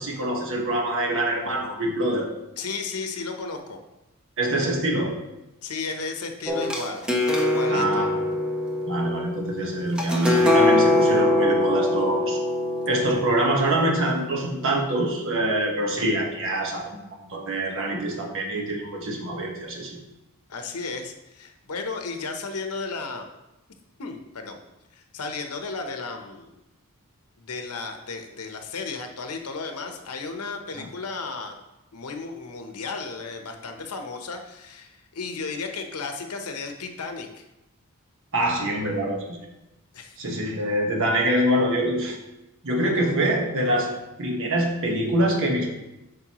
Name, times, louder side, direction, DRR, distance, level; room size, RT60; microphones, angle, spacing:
voice 1, 0.0-2.3 4.4-5.1 7.7-8.2 8.8-12.4 12.9-20.0 30.8-30.9 38.3-39.4 40.2-42.2 42.6-43.9 44.2-45.7, right 1 dB, 60° right, 1 dB, 1.4 m, -25 dB
voice 2, 2.6-3.8 5.6-7.0 7.4-8.0 20.5-23.3 24.0-24.6 24.9-26.5 27.4-31.6 31.9-37.4 39.9-40.2, left 4 dB, 80° left, 5 dB, 0.9 m, -34 dB
sound 1, 6.5-14.2, left 1 dB, 5° right, 0.9 m, -23 dB
8.7 x 5.3 x 3.0 m, 0.97 s
head